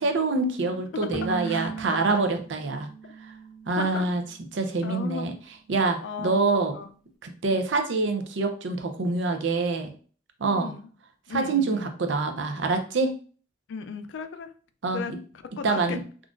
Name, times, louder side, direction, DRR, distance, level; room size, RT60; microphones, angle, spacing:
voice 1, 0.0-2.9 3.7-4.2 4.5-5.3 5.7-6.7 7.2-9.9 10.4-10.7 11.3-13.1 14.8-15.2 15.6-16.0, right 3 dB, 75° right, 6 dB, 0.5 m, -26 dB
Bowed string instrument, 1.1-4.3, right 5 dB, ahead, 0.5 m, -38 dB
voice 2, 1.2-2.2 3.0-3.1 3.8-4.1 4.8-5.3 6.0-6.4 6.7-6.9 7.5-7.6 9.0-9.1 10.5-10.9 11.3-11.9 12.5-12.6 13.7-14.5 14.9-16.0, left 5 dB, 80° left, 9 dB, 0.4 m, -36 dB
3.7 x 2.4 x 2.4 m, 0.42 s
head